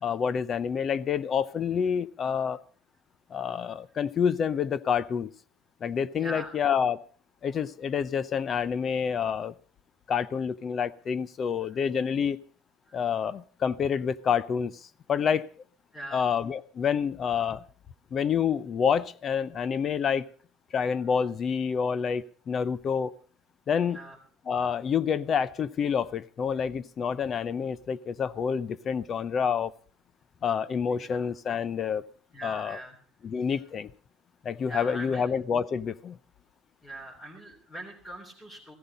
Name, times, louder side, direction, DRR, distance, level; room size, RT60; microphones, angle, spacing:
voice 1, 0.0-2.6 3.3-5.3 5.8-7.0 7.4-9.5 10.1-12.4 12.9-14.8 15.1-15.5 16.1-17.6 18.1-20.2 20.7-23.1 23.7-24.0 24.5-29.7 30.4-32.0 32.4-32.8 33.2-33.9 34.4-36.2, left 7 dB, 35° left, 18 dB, 0.7 m, -28 dB
voice 2, 6.2-6.6 11.6-11.8 12.9-13.0 15.9-16.3 23.9-24.2 30.9-31.3 32.3-33.0 34.7-35.3 36.8-38.7, right 1 dB, 15° left, -2 dB, 3.2 m, -42 dB
15.5 x 14.5 x 5.4 m, 0.41 s
cardioid pair, 140°, 0 cm